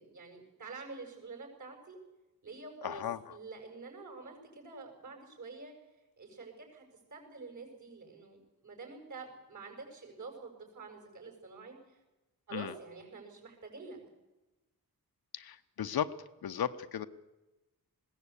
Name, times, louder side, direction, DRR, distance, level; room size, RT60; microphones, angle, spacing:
voice 1, 0.0-2.0 2.4-3.0 3.3-5.7 6.2-6.8 7.1-12.0 12.5-14.0, right 4 dB, 55° right, 3 dB, 6.6 m, -47 dB
voice 2, 2.8-3.2 12.5-12.7 15.3-16.1 16.4-17.1, left 9 dB, 80° left, 11 dB, 1.0 m, -35 dB
20.5 x 17.0 x 8.4 m, 1.0 s
wide cardioid pair, 130°, 37 cm